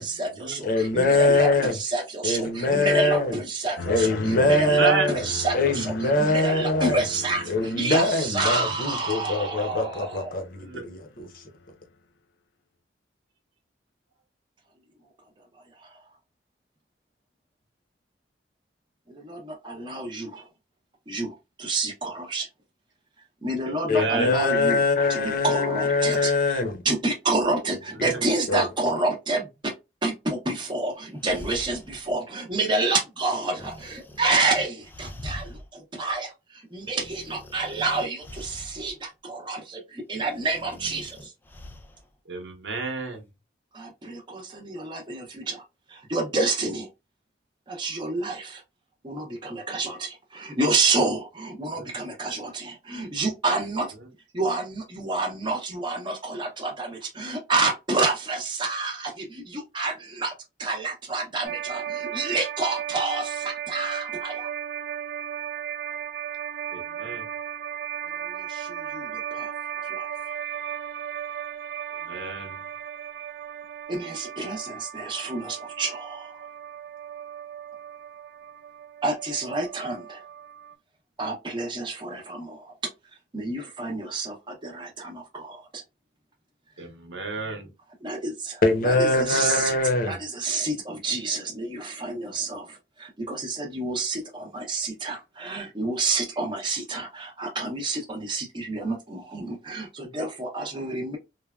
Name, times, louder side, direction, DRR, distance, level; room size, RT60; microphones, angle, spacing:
voice 1, 0.0-10.4 15.8-16.0 19.1-20.4 21.1-22.5 23.4-24.8 25.1-29.7 30.0-41.3 43.7-45.6 45.9-46.9 47.7-48.6 49.0-53.9 54.3-60.3 60.6-64.5 68.2-69.5 69.8-70.1 73.9-76.5 79.0-80.2 81.2-82.7 83.3-85.8 88.0-88.6 88.8-89.7 90.1-101.2, right 3 dB, 25° right, 0.7 m, -29 dB
voice 2, 0.6-1.7 2.2-3.3 3.9-5.2 5.5-7.0 7.5-11.3 23.9-26.8 28.0-28.1 28.5-28.6 88.6-90.2, left 2 dB, 50° left, 0.7 m, -23 dB
sound 1, 3.8-10.8 11.2-11.7, left 4 dB, 85° left, 0.4 m, -40 dB
voice 3, 4.3-5.1 10.6-10.8 23.7-24.3 28.0-28.2 42.3-43.2 51.7-51.9 66.7-67.3 72.0-72.6 86.8-87.7, right 4 dB, 90° right, 1.0 m, -30 dB
sound 2, 30.9-32.1 33.5-35.7 36.1-36.2 36.8-39.0 40.1-42.0, left 1 dB, 10° left, 0.3 m, -43 dB
sound 3, 61.4-80.7, right 9 dB, 65° right, 0.4 m, -35 dB
3.2 x 2.1 x 2.2 m
head